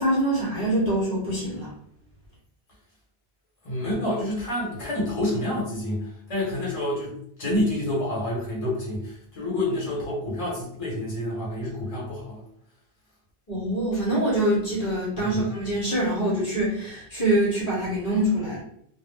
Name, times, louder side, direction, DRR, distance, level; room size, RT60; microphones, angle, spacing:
voice 1, 0.0-1.7 13.5-18.6, right 1 dB, 55° left, -7 dB, 1.1 m, -24 dB
voice 2, 3.6-12.4 15.2-15.4, left 1 dB, 35° left, -5 dB, 1.1 m, -28 dB
2.2 x 2.1 x 3.4 m, 0.67 s
omnidirectional pair, 1.1 m